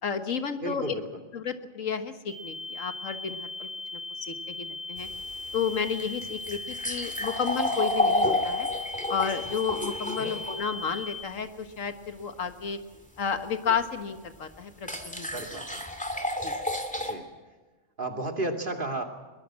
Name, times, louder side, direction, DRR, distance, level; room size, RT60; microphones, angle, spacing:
voice 1, 0.0-0.9 1.3-5.1 5.5-8.7 9.1-12.8 13.2-15.3 16.4-16.5, left 6 dB, 80° left, 9 dB, 1.8 m, -32 dB
voice 2, 0.6-1.2 10.2-10.3 15.3-15.8 17.0-17.3 18.0-19.0, right 1 dB, 40° right, 4 dB, 2.7 m, -33 dB
sound 1, 2.3-11.1, left 3 dB, 80° right, 8.5 m, -38 dB
sound 2, 5.0-10.6 13.7-13.8 14.8-17.1, left 1 dB, 5° left, 2.4 m, -30 dB
22.5 x 21.5 x 7.6 m, 1.3 s
omnidirectional pair, 1.3 m